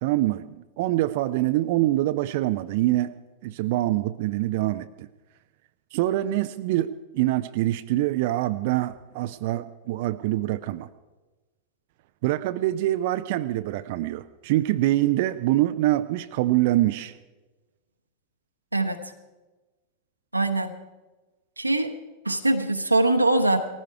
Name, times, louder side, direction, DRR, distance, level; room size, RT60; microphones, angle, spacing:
voice 1, 0.0-3.1 3.4-5.1 5.9-10.9 12.2-17.1, right 15 dB, 50° right, 11 dB, 0.5 m, -25 dB
voice 2, 20.3-20.7 21.6-21.9 22.2-23.6, right 2 dB, 85° right, 4 dB, 1.0 m, -22 dB
18.0 x 15.0 x 4.7 m, 1.2 s
figure-of-eight pair, 90°, 0 cm